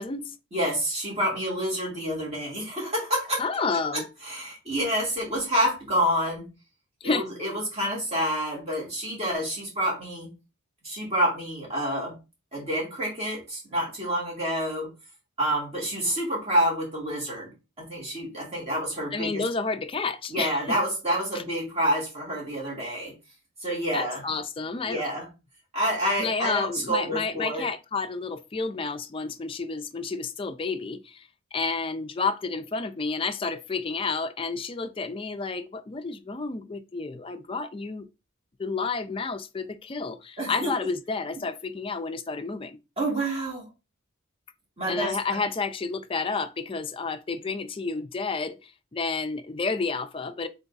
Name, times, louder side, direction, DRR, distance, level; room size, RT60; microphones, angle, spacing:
voice 1, 0.0-0.4 3.4-4.1 7.0-7.3 19.1-20.8 21.3-21.4 23.9-25.0 26.2-38.1 38.6-42.8 44.9-50.5, left 4 dB, 25° left, 0.4 m, -30 dB
voice 2, 0.5-3.4 3.9-6.5 7.0-10.3 10.8-12.1 12.5-14.9 15.4-17.5 17.8-19.4 20.3-23.1 23.6-24.2 24.8-25.3 25.7-27.7 40.4-40.7 43.0-43.7 44.8-45.2, equal, 30° right, 2.5 m, -28 dB
3.9 x 3.4 x 4.0 m
head